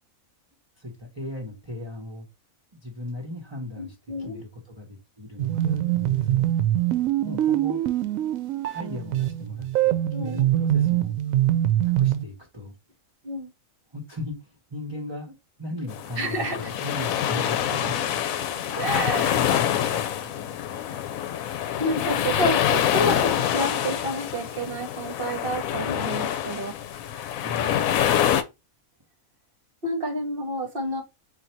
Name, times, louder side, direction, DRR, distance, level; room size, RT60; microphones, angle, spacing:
voice 1, 0.8-2.3 2.7-6.5 7.2-7.8 8.7-11.4 11.8-12.7 13.9-18.2 19.2-20.5 27.4-28.0, left 2 dB, 25° right, 0.9 m, -37 dB
voice 2, 3.8-4.4 10.1-10.4 13.2-13.5 16.2-16.7 18.8-19.4 21.8-27.3 29.8-31.0, right 1 dB, 45° right, 1.1 m, -30 dB
sound 1, 5.4-12.2, right 13 dB, 75° right, 1.0 m, -23 dB
sound 2, 15.9-28.4, left 10 dB, 75° left, 1.0 m, -26 dB
4.0 x 2.6 x 4.4 m
omnidirectional pair, 1.5 m